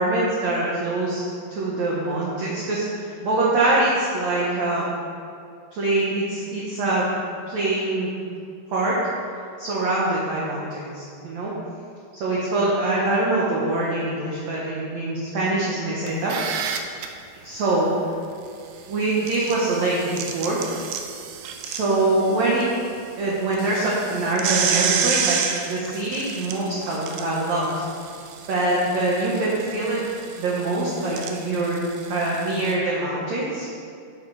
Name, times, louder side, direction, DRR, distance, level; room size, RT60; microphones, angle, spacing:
voice 1, 0.0-4.9 5.7-7.1 7.5-8.1 8.7-9.0 9.6-11.5 12.1-16.4 17.3-18.1 18.9-20.6 21.6-22.7 23.2-27.9 28.5-30.0 30.4-31.8 32.1-33.7, right 2 dB, 65° right, -5 dB, 1.9 m, -24 dB
sound 1, 16.1-17.1 19.0-22.6 23.0-23.1 23.5-32.7, right 7 dB, 80° right, 2.8 m, -30 dB
12.5 x 6.3 x 4.8 m, 2.4 s
omnidirectional pair, 4.9 m